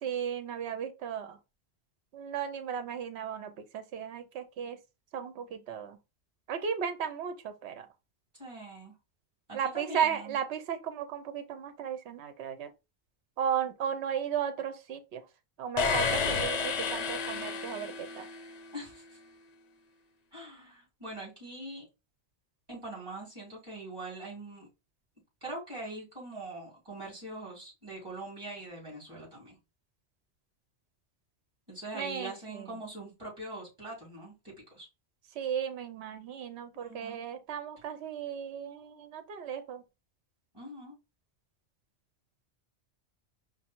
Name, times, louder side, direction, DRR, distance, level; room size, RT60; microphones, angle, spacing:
voice 1, 0.0-1.4 2.1-4.8 5.1-6.0 6.5-7.9 9.5-12.7 13.4-15.2 15.6-18.3 31.9-32.7 35.4-39.8, right 8 dB, 75° right, 0.9 m, -35 dB
voice 2, 8.3-8.9 9.5-10.4 18.7-19.2 20.3-21.9 22.7-24.7 25.4-29.6 31.7-34.9 36.7-37.2 40.5-41.0, right 2 dB, 25° right, 3.1 m, -43 dB
sound 1, 15.8-18.6, left 5 dB, 45° left, 0.6 m, -31 dB
5.1 x 2.1 x 4.3 m
omnidirectional pair, 1.1 m